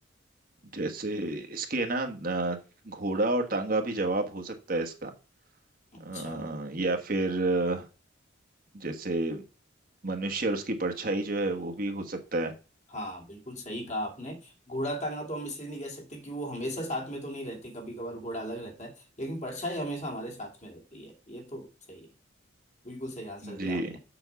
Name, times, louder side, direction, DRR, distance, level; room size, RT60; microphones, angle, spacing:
voice 1, 0.7-2.6 2.8-5.1 6.0-7.9 8.7-9.4 10.0-12.5 23.4-23.9, right 2 dB, 45° right, 1.3 m, -30 dB
voice 2, 5.9-6.5 12.9-22.1 22.8-24.0, equal, 40° left, 2.5 m, -37 dB
7.1 x 5.4 x 6.9 m
head